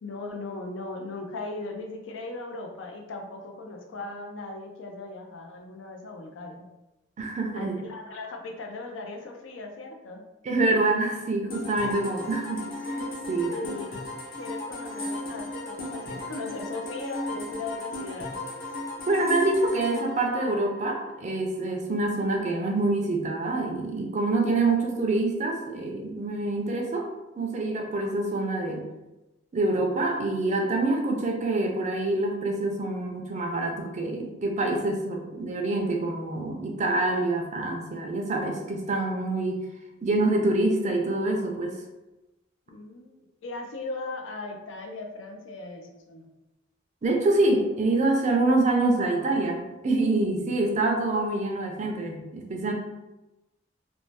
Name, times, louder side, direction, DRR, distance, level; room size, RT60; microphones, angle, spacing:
voice 1, 0.0-6.7 7.5-10.2 13.5-14.0 14.3-18.4 42.7-43.1 43.4-46.3, left 2 dB, 80° left, 2 dB, 0.5 m, -38 dB
voice 2, 7.2-7.7 10.4-13.5 19.1-27.1 27.4-28.9 29.5-39.6 40.0-41.8 47.0-52.7, right 2 dB, 40° right, 1 dB, 0.4 m, -26 dB
sound 1, 11.5-21.2, left 1 dB, 50° left, 0.7 m, -36 dB
2.6 x 2.0 x 3.2 m, 1.0 s
head